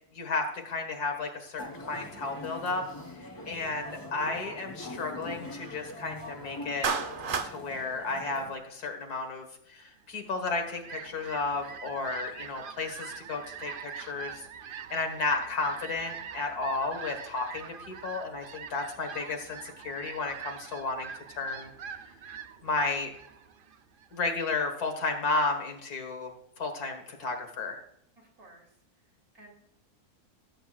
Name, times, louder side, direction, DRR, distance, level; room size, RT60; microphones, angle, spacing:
voice 1, 0.1-2.8 3.5-6.9 7.4-21.7 22.6-23.1 24.1-27.8, left 3 dB, 75° left, 4 dB, 2.1 m, -33 dB
sound 1, 1.6-8.5, left 1 dB, 15° left, 1.0 m, -43 dB
voice 2, 3.2-3.5 28.2-28.6 29.3-29.5, right 1 dB, 65° right, 0 dB, 3.3 m, -54 dB
Clapping, 6.8-7.5, right 5 dB, 45° right, 0.7 m, -29 dB
Fowl, 10.3-24.2, right 7 dB, 80° right, 0.4 m, -44 dB
16.5 x 8.0 x 2.4 m, 0.76 s
omnidirectional pair, 1.7 m